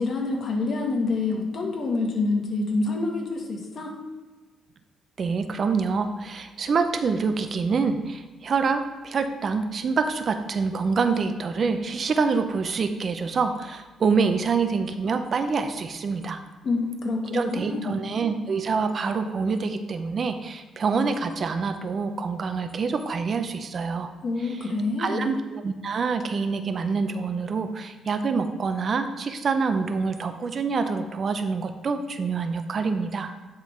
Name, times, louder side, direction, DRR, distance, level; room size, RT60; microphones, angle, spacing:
voice 1, 0.0-4.0 16.6-18.0 24.2-25.3, left 3 dB, 55° left, 0 dB, 1.8 m, -27 dB
voice 2, 5.2-16.4 17.3-24.1 24.4-24.5 25.0-33.3, right 5 dB, 50° right, 8 dB, 0.6 m, -26 dB
9.8 x 3.8 x 4.5 m, 1.3 s
cardioid pair, 90°, 0 cm